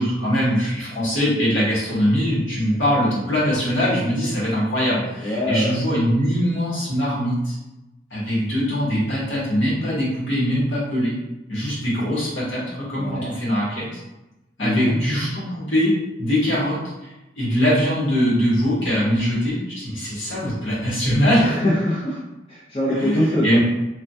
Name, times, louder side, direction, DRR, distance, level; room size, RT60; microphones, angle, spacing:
voice 1, 0.0-7.6 8.1-11.1 11.5-14.0 14.6-15.9 16.2-21.6 23.0-23.6, equal, 75° left, -8 dB, 1.4 m, -22 dB
voice 2, 5.2-5.8 13.0-13.3 14.6-15.0 21.4-22.2 22.5-23.6, left 1 dB, 30° left, -7 dB, 0.5 m, -23 dB
3.2 x 2.2 x 2.7 m, 0.99 s
head